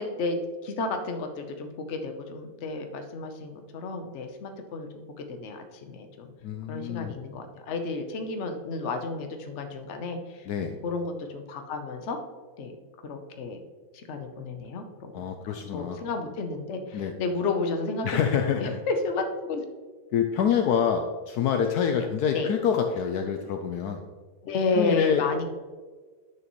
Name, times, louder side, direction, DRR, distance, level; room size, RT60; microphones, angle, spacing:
voice 1, 0.0-4.9 5.3-6.3 6.7-10.5 10.8-12.2 12.6-12.8 13.0-13.6 13.9-15.3 15.7-19.6 21.6-21.7 21.9-22.1 22.3-22.5 24.4-25.4, left 3 dB, 50° left, 5 dB, 1.0 m, -32 dB
voice 2, 6.4-7.2 10.5-10.8 15.1-16.0 16.9-17.1 18.0-18.7 20.1-24.0 24.7-25.3, left 7 dB, 75° left, 5 dB, 1.1 m, -26 dB
10.5 x 6.3 x 3.1 m, 1.4 s
omnidirectional pair, 1.8 m